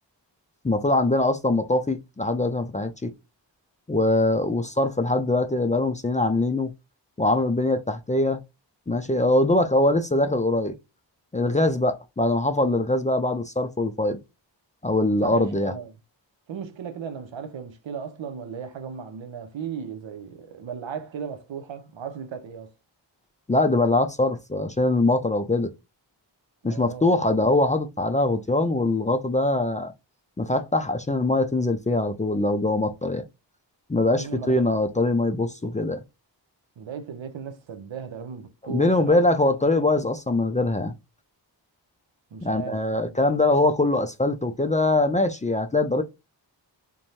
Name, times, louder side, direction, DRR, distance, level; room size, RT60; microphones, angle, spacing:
voice 1, 0.6-3.1 3.9-6.7 7.2-8.4 8.9-10.7 11.3-14.2 14.8-15.7 23.5-25.7 26.6-29.9 30.4-33.2 33.9-36.0 38.6-40.9 42.4-46.0, left 2 dB, 20° left, 0.4 m, -22 dB
voice 2, 15.2-15.9 16.5-22.7 26.6-27.3 34.1-34.6 36.8-39.2 39.8-40.0 42.3-43.1, right 7 dB, 85° right, 0.7 m, -36 dB
2.6 x 2.2 x 3.0 m
cardioid pair, 55°, 45 cm